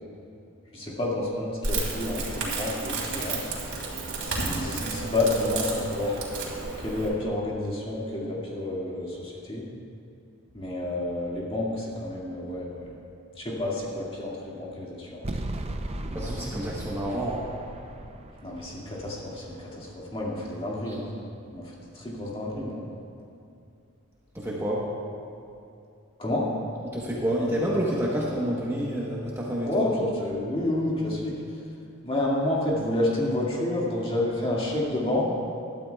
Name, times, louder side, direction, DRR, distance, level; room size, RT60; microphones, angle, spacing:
voice 1, 0.7-3.5 4.4-6.1 6.8-9.7 10.5-12.9 13.4-15.4 18.4-21.0 21.5-21.6 21.9-22.9 26.2-26.5 29.7-31.3 32.0-35.3, left 1 dB, 25° left, -5 dB, 2.0 m, -29 dB
Crackle, 1.6-7.1, right 3 dB, 80° right, 3.0 m, -31 dB
sound 1, 15.2-20.4, right 1 dB, 30° right, 0.5 m, -37 dB
voice 2, 16.1-17.5 20.9-21.0 24.3-24.8 26.9-29.9, equal, 10° right, -5 dB, 1.1 m, -28 dB
20.5 x 12.0 x 2.4 m, 2.6 s
head